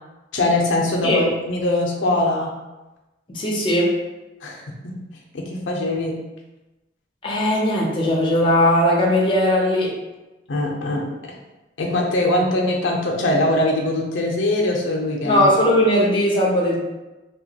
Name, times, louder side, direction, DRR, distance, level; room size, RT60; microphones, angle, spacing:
voice 1, 0.3-2.5 4.4-5.0 5.3-6.2 10.5-11.4 11.8-15.5, left 1 dB, 70° left, -1 dB, 0.5 m, -22 dB
voice 2, 3.3-4.0 7.2-10.0 15.2-16.8, left 1 dB, 25° left, -3 dB, 0.5 m, -18 dB
2.9 x 2.2 x 2.7 m, 1.1 s
head